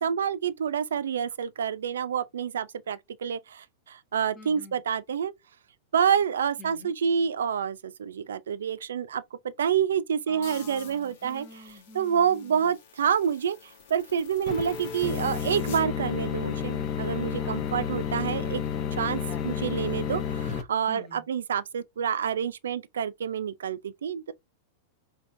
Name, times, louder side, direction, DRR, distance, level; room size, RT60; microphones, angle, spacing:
voice 1, 0.0-5.3 5.9-9.2 9.6-11.5 11.9-13.6 13.9-18.6 18.9-24.3, right 8 dB, 90° right, 0.4 m, -28 dB
voice 2, 4.3-4.8 6.6-6.9 10.3-12.7 17.4-17.9 19.2-19.6 20.9-21.3, left 3 dB, 30° left, 1.1 m, -48 dB
sound 1, 10.4-15.8, left 6 dB, 70° left, 1.4 m, -49 dB
sound 2, 14.5-20.6, left 8 dB, 45° left, 0.7 m, -31 dB
4.5 x 2.8 x 2.6 m
hypercardioid pair, 120°, 0 cm